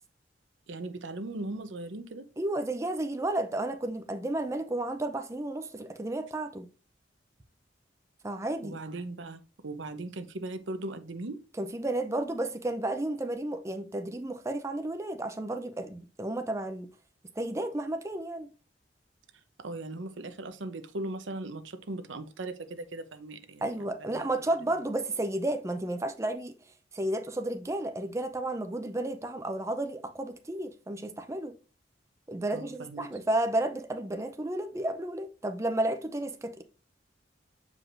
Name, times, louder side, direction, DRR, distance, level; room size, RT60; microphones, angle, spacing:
voice 1, 0.7-2.3 8.6-11.4 19.6-23.7 24.1-24.3 32.5-33.1, right 2 dB, 85° right, 0.8 m, -38 dB
voice 2, 2.4-6.7 8.2-8.7 11.6-16.9 17.4-18.5 23.6-26.5 26.9-31.5 32.3-36.6, right 1 dB, 15° right, 0.5 m, -32 dB
7.7 x 4.9 x 2.6 m
head